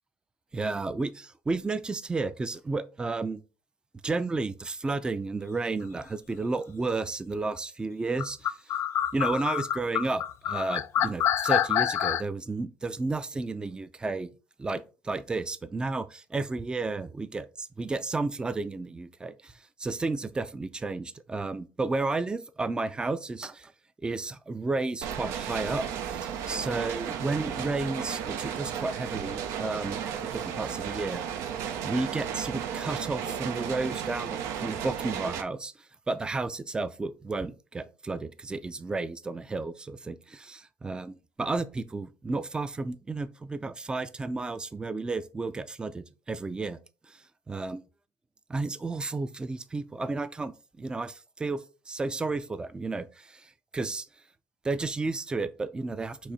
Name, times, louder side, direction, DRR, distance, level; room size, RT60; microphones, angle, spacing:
voice 1, 0.5-3.4 4.0-8.5 9.1-14.3 14.6-23.7 24.0-31.2 31.8-35.7 36.1-46.8 47.1-47.8 48.5-54.1 54.6-56.3, right 3 dB, 15° right, 0.4 m, -32 dB
sound 1, 8.2-12.2, left 10 dB, 60° left, 0.3 m, -27 dB
sound 2, 25.0-35.4, right 8 dB, 85° right, 0.5 m, -34 dB
4.5 x 2.7 x 4.0 m
cardioid pair, 95°, 5 cm